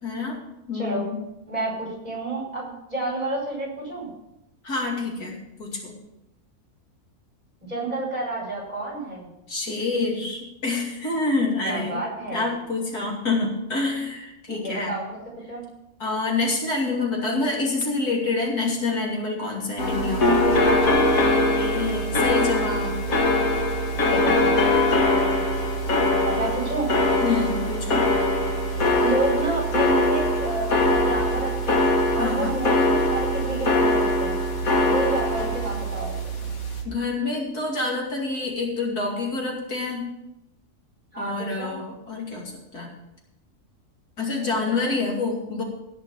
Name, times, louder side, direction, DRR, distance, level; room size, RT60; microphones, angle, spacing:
voice 1, 0.0-0.4 0.7-1.2 4.6-6.0 9.5-12.0 12.3-15.0 16.0-20.4 21.6-23.0 27.2-28.1 32.2-32.6 36.8-40.1 41.2-42.9 44.2-45.6, left 3 dB, 80° left, -1 dB, 3.1 m, -27 dB
voice 2, 1.5-4.1 7.6-9.3 11.6-12.5 14.5-15.2 15.5-15.6 20.5-20.9 24.1-24.7 26.2-26.9 29.0-34.4 34.8-36.4 41.1-41.8 44.6-45.0, right 2 dB, 25° right, -2 dB, 5.2 m, -30 dB
sound 1, 19.8-36.8, left 1 dB, 65° left, 2.2 m, -22 dB
16.5 x 5.8 x 7.3 m, 0.89 s
omnidirectional pair, 1.6 m